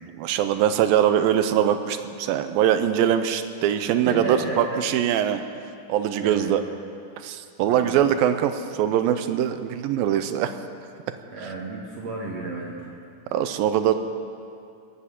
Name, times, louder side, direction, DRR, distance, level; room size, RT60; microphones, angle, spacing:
voice 1, 0.2-5.4 5.9-6.6 7.2-10.5 13.3-13.9, right 10 dB, 80° right, 9 dB, 2.3 m, -22 dB
voice 2, 4.1-4.9 6.2-6.7 7.6-8.0 11.3-12.9, right 2 dB, 55° right, -2 dB, 2.1 m, -33 dB
20.0 x 10.0 x 7.3 m, 2.5 s
omnidirectional pair, 4.4 m